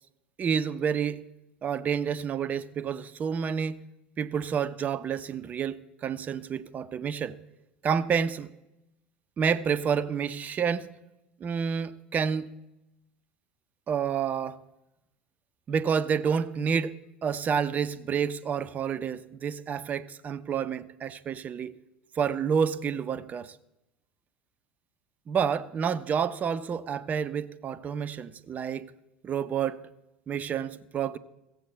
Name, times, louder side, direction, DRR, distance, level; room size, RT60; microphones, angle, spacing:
voice 1, 0.4-1.2 1.6-3.8 4.2-7.4 7.8-8.5 9.4-10.9 11.4-12.5 13.9-14.6 15.7-21.7 22.2-23.6 25.3-28.9 29.2-29.8 30.3-31.2, right 7 dB, 30° right, 0.7 m, -29 dB
15.5 x 7.9 x 8.3 m
figure-of-eight pair, 75°, 5 cm